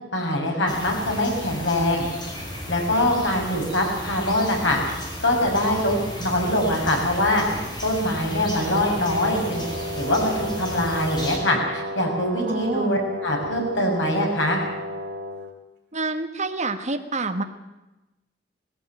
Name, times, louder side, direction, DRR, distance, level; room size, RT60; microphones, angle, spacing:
voice 1, 0.1-2.1 2.7-4.8 5.2-7.4 7.8-9.6 9.9-14.6, left 1 dB, 90° left, 1 dB, 6.4 m, -23 dB
sound 1, 0.7-11.4, equal, 25° left, 5.5 m, -34 dB
Brass instrument, 8.5-15.5, left 1 dB, 65° right, 3.1 m, -33 dB
voice 2, 12.5-12.9 15.9-17.4, right 3 dB, 40° right, 6 dB, 1.6 m, -27 dB
19.5 x 16.0 x 9.3 m, 1.0 s
head